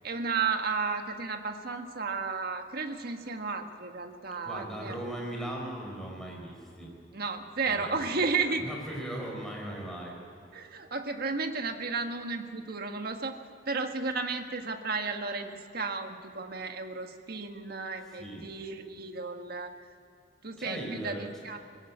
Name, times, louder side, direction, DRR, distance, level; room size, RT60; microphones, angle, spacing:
voice 1, 0.0-5.0 7.1-8.7 10.5-13.4 13.7-19.8 20.4-21.6, right 4 dB, 55° right, 5 dB, 1.6 m, -33 dB
voice 2, 4.4-6.9 7.6-10.2 18.1-18.5 20.6-21.3, right 1 dB, 5° left, -1 dB, 5.1 m, -39 dB
21.0 x 16.5 x 8.7 m, 2.6 s
head